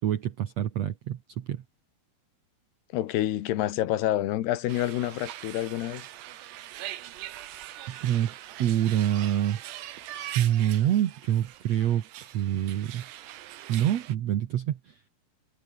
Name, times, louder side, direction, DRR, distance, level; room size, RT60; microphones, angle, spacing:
voice 1, 0.0-1.6 7.9-9.6 10.0-13.1 13.7-15.0, right 11 dB, 70° right, 1.6 m, -27 dB
voice 2, 2.9-6.1, left 13 dB, 80° left, 3.4 m, -28 dB
sound 1, 4.7-14.2, right 13 dB, 85° right, 3.6 m, -42 dB
omnidirectional pair, 4.7 m